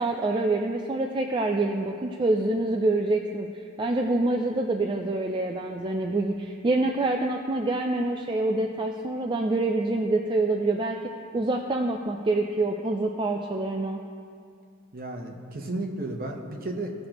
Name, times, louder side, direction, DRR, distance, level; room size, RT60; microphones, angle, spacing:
voice 1, 0.0-3.5 3.8-11.0 11.3-14.0, right 2 dB, 25° right, 2 dB, 0.4 m, -26 dB
voice 2, 14.9-16.9, right 2 dB, 45° right, 1 dB, 1.0 m, -33 dB
17.0 x 6.4 x 3.0 m, 2.3 s
head